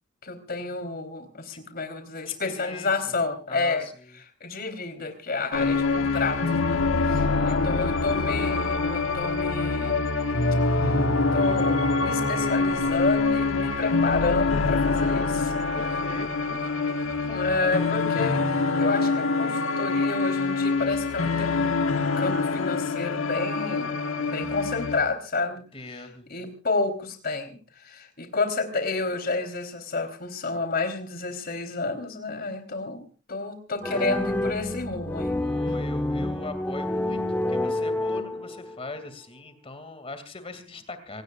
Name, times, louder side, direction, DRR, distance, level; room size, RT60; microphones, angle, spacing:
voice 1, 0.2-3.9 4.4-10.1 11.3-15.5 17.3-23.9 24.2-25.6 25.9-35.4, left 3 dB, 50° left, 7 dB, 3.8 m, -30 dB
voice 2, 2.3-2.9 3.5-4.2 7.2-7.8 15.8-17.9 25.7-26.3 35.3-37.2 37.5-41.2, left 2 dB, 30° left, 9 dB, 2.5 m, -41 dB
sound 1, 5.5-25.0, left 3 dB, 90° left, 1.6 m, -25 dB
sound 2, 33.8-38.8, left 1 dB, 10° left, 1.5 m, -28 dB
26.0 x 18.0 x 2.5 m, 0.36 s
head